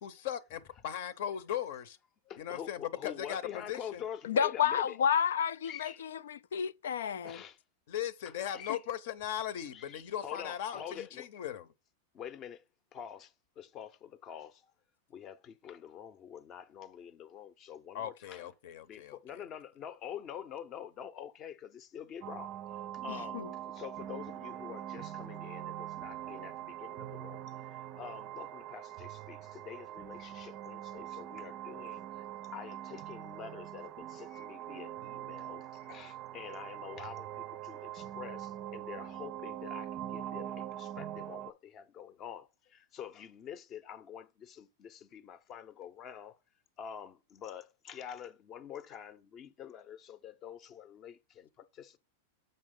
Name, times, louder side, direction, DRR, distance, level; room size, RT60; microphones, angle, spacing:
voice 1, 0.0-2.0 2.4-4.0 7.9-11.7 17.9-19.2, left 10 dB, 65° left, 0.8 m, -38 dB
voice 2, 2.5-5.0 5.6-6.1 7.2-7.6 8.5-8.8 9.7-11.3 12.1-12.6 12.9-14.6 15.1-18.5 18.8-22.5 23.0-32.3 32.5-46.4 46.8-52.0, left 9 dB, 30° left, 0.7 m, -46 dB
voice 3, 4.2-7.4 23.1-23.5, left 8 dB, 85° left, 0.4 m, -31 dB
sound 1, 22.2-41.5, right 12 dB, 40° right, 0.5 m, -43 dB
7.2 x 5.4 x 3.8 m
supercardioid pair, 135°, 0 cm